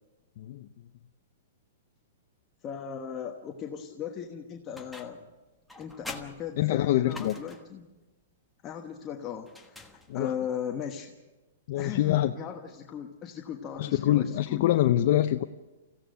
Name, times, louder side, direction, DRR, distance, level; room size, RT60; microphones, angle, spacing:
voice 1, 0.4-0.7 6.6-7.4 10.1-10.3 11.7-12.3 13.8-15.4, left 13 dB, 50° left, 8 dB, 0.6 m, -25 dB
voice 2, 2.6-5.2 5.8-7.9 8.6-9.9 10.1-11.1 11.7-14.7, left 8 dB, 25° left, 2 dB, 1.2 m, -38 dB
sound 1, 4.8-5.3 5.7-7.8 9.5-10.4, left 2 dB, ahead, 1.3 m, -45 dB
26.5 x 16.0 x 6.4 m, 1.1 s
hypercardioid pair, 155°, 0 cm